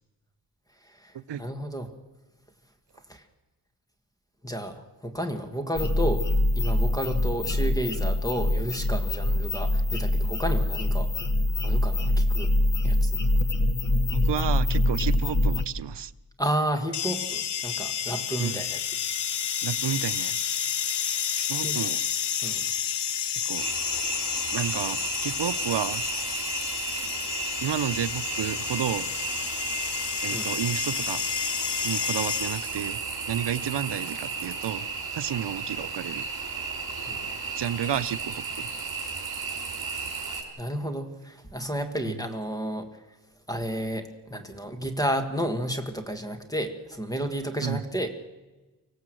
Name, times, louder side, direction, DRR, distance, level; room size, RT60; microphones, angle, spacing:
voice 1, 1.4-1.9 3.1-3.2 4.4-6.3 6.5-11.1 11.6-12.5 12.8-13.2 16.4-18.8 21.6-21.8 22.4-22.6 30.3-30.5 37.1-37.3 40.6-42.9 43.5-48.1, right 1 dB, 10° left, 1.6 m, -31 dB
sound 1, 5.8-15.7, left 1 dB, 45° left, 1.3 m, -24 dB
voice 2, 14.1-16.1 18.4-18.6 19.6-20.5 21.3-22.0 23.4-23.7 24.5-26.0 27.6-29.1 30.2-31.2 31.8-33.0 33.3-34.8 35.1-36.3 37.6-38.7 42.0-42.2 47.6-47.8, right 10 dB, 80° right, 0.7 m, -31 dB
sound 2, 16.9-32.9, left 9 dB, 70° left, 0.9 m, -30 dB
sound 3, 23.5-40.4, right 5 dB, 60° right, 4.3 m, -34 dB
25.0 x 16.5 x 7.7 m
wide cardioid pair, 170°, 42 cm